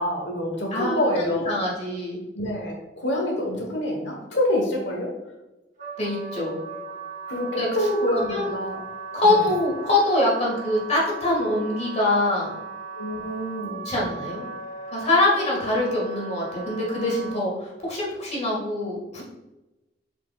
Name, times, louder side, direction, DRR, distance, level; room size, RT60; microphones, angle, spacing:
voice 1, 0.0-1.5 2.3-5.1 7.3-8.8 13.0-13.8, left 1 dB, 85° left, 1 dB, 1.3 m, -26 dB
voice 2, 0.7-2.2 6.0-6.6 7.6-7.7 8.1-8.5 9.1-12.6 13.8-14.5 14.9-19.2, left 2 dB, 40° left, -3 dB, 2.0 m, -24 dB
Wind instrument woodwind instrument, 5.8-17.4, right 4 dB, 45° right, 1.1 m, -37 dB
7.5 x 5.2 x 2.4 m, 1.0 s
head